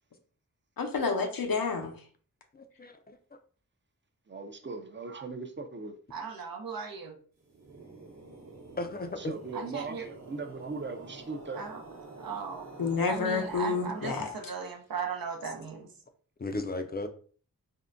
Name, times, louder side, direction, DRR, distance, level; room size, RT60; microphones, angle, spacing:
voice 1, 0.8-1.9 12.8-14.3, left 5 dB, 80° left, 0.6 m, -29 dB
voice 2, 2.5-3.2 8.8-9.3 16.4-17.1, left 2 dB, 30° left, 0.4 m, -35 dB
voice 3, 4.3-6.0 9.2-11.7, right 3 dB, 35° right, 0.5 m, -39 dB
voice 4, 6.1-7.2 9.5-10.1 11.5-11.8 12.2-12.7 13.0-15.9, right 5 dB, 80° right, 0.6 m, -37 dB
sound 1, 7.4-14.8, right 3 dB, 50° right, 0.8 m, -48 dB
3.6 x 2.1 x 2.5 m
cardioid pair, 45°, 34 cm